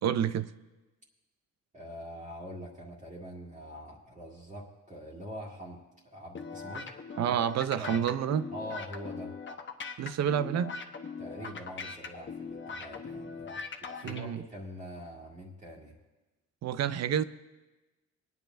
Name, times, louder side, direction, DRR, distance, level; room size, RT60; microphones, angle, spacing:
voice 1, 0.0-0.5 7.2-8.5 10.0-10.7 14.0-14.4 16.6-17.2, right 9 dB, 60° right, 13 dB, 0.6 m, -29 dB
voice 2, 1.7-7.0 7.3-7.4 7.8-8.1 8.5-9.3 11.2-16.0, equal, 25° right, -5 dB, 2.0 m, -44 dB
sound 1, 6.3-14.2, left 5 dB, 40° left, 1.0 m, -40 dB
26.0 x 9.3 x 2.6 m, 1.1 s
cardioid pair, 90°, 30 cm